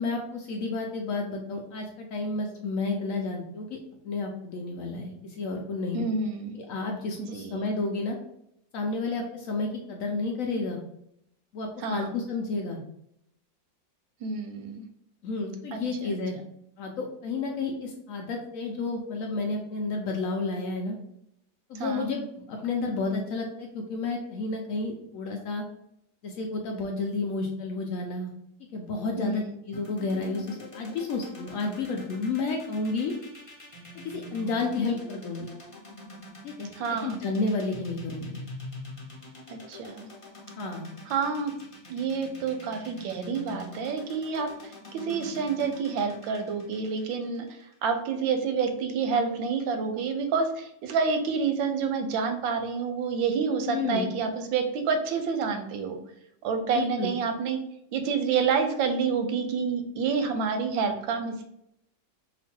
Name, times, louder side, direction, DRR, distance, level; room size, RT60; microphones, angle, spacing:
voice 1, 0.0-3.8 4.0-6.1 6.5-8.2 8.7-10.8 11.5-12.8 15.2-16.4 16.8-21.0 21.7-25.6 26.2-28.3 28.7-33.1 33.9-35.5 36.4-38.4 40.6-40.9 53.7-54.1 56.7-57.1, left 3 dB, 90° left, 1 dB, 0.7 m, -31 dB
voice 2, 5.9-6.5 7.2-7.6 11.8-12.1 14.2-14.8 15.7-16.1 21.7-22.1 29.2-29.5 36.7-37.2 39.5-40.1 41.1-41.5 41.9-56.0 56.4-57.6 57.9-61.4, right 5 dB, 90° right, 6 dB, 1.3 m, -28 dB
sound 1, 29.7-47.9, left 1 dB, 45° left, 0.4 m, -44 dB
3.0 x 2.5 x 4.3 m, 0.77 s
omnidirectional pair, 2.0 m